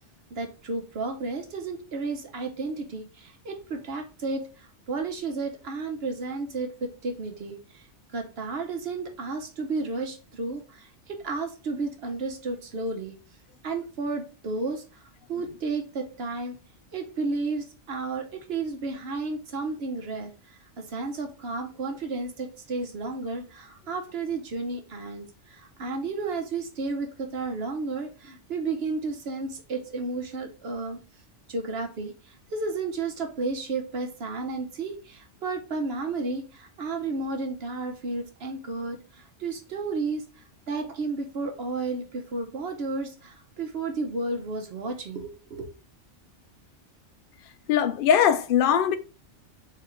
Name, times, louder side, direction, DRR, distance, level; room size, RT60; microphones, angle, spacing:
voice 1, 0.3-7.9 8.1-13.1 13.6-16.6 16.9-31.0 31.5-45.6, right 3 dB, 60° right, 1.0 m, -32 dB
voice 2, 47.7-49.0, left 9 dB, 60° left, 0.6 m, -21 dB
4.4 x 2.8 x 3.8 m
omnidirectional pair, 1.2 m